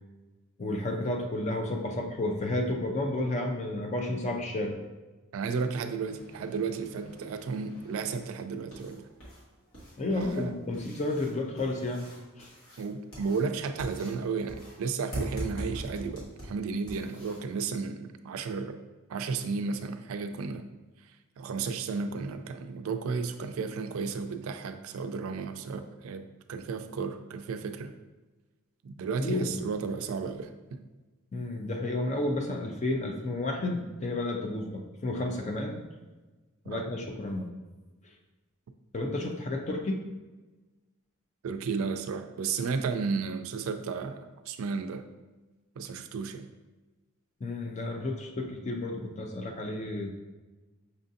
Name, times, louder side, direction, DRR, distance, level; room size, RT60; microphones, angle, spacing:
voice 1, 0.6-4.7 10.0-12.1 12.4-12.5 29.2-29.6 31.3-35.8 36.7-37.5 38.9-40.0 47.4-50.1, left 2 dB, 30° left, 3 dB, 0.4 m, -31 dB
voice 2, 5.3-9.0 10.1-10.6 12.8-18.8 19.1-20.7 21.4-27.9 28.8-30.8 36.7-36.9 41.4-45.0 45.8-46.5, right 5 dB, 65° right, 8 dB, 0.3 m, -33 dB
sound 1, 6.0-17.4, equal, 60° left, 1.4 m, -44 dB
5.6 x 2.5 x 2.6 m, 1.2 s
head